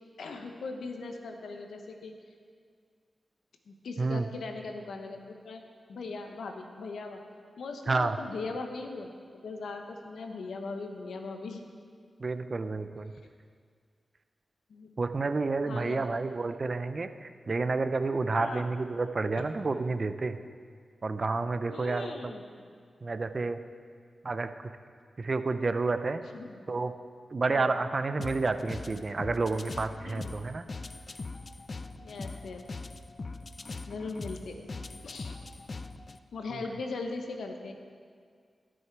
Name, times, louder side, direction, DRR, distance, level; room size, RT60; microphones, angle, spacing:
voice 1, 0.2-2.1 3.7-5.6 5.9-7.2 7.6-9.1 9.4-11.6 14.7-14.9 15.7-16.1 18.2-18.7 19.4-19.5 21.7-22.4 26.3-26.6 27.4-27.7 30.1-30.3 32.0-32.6 33.9-35.4 36.3-37.7, left 3 dB, 90° left, 4 dB, 1.0 m, -39 dB
voice 2, 4.0-4.3 7.9-8.2 12.2-13.1 15.0-20.4 21.0-22.3 23.0-23.6 24.2-24.5 25.2-26.2 26.7-26.9 27.3-30.6 36.5-36.6, right 3 dB, 55° right, 10 dB, 0.6 m, -30 dB
sound 1, 28.2-36.2, left 3 dB, 50° left, 0.5 m, -41 dB
18.0 x 6.3 x 4.7 m, 2.1 s
cardioid pair, 45°, 0 cm